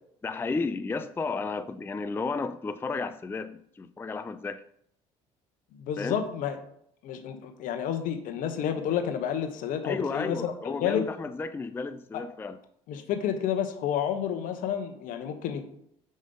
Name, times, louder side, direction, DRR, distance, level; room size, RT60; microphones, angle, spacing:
voice 1, 0.2-4.6 6.0-6.2 9.8-12.6, left 4 dB, 15° left, 11 dB, 0.4 m, -33 dB
voice 2, 5.8-6.6 7.0-11.1 12.9-15.6, left 9 dB, 65° left, 8 dB, 0.9 m, -30 dB
5.3 x 5.0 x 3.9 m, 0.70 s
hypercardioid pair, 65°, 15 cm